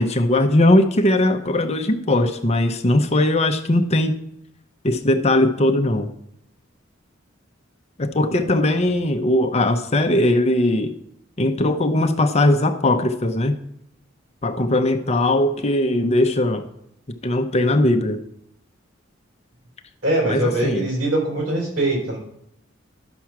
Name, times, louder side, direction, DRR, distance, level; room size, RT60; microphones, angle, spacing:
voice 1, 0.0-4.2 4.8-6.1 8.0-10.9 11.4-13.6 14.4-16.6 17.2-18.2 20.3-20.9, left 1 dB, 35° left, 6 dB, 0.7 m, -19 dB
voice 2, 8.3-8.9 20.0-22.2, right 1 dB, 70° right, -2 dB, 4.4 m, -23 dB
11.5 x 6.1 x 5.9 m, 0.78 s
head